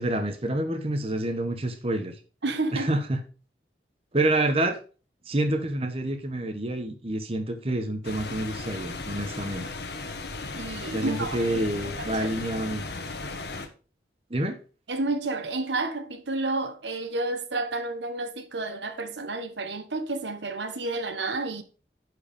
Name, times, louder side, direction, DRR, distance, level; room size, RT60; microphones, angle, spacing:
voice 1, 0.0-2.2 2.7-3.2 4.1-4.8 5.2-9.7 10.9-12.8 14.3-14.6, right 1 dB, 35° right, 1.1 m, -28 dB
voice 2, 2.4-2.9 10.6-11.6 12.0-12.3 14.9-21.6, right 2 dB, 85° right, 1.2 m, -30 dB
sound 1, 8.0-13.7, left 3 dB, 70° left, 1.4 m, -36 dB
10.0 x 4.8 x 5.3 m
head